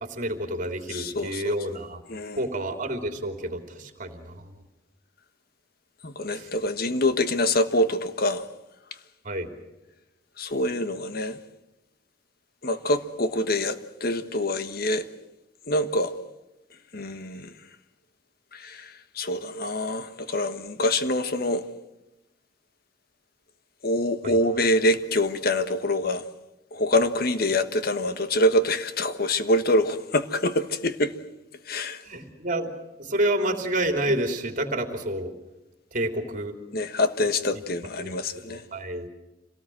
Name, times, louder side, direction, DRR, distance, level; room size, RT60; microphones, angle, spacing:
voice 1, 0.0-2.0 2.4-4.4 6.3-6.5 9.2-9.5 24.2-24.4 32.0-32.7 33.0-35.3 35.9-36.5 37.2-37.3 38.0-39.1, right 1 dB, 45° right, 3.1 m, -29 dB
voice 2, 0.9-1.5 2.1-2.4 6.0-8.4 10.4-11.4 12.6-15.0 15.7-16.1 16.9-17.5 18.5-18.9 19.2-21.6 23.8-26.2 26.7-31.1 31.7-32.0 36.7-38.6, left 1 dB, 55° left, 1.4 m, -25 dB
26.5 x 18.0 x 7.8 m
head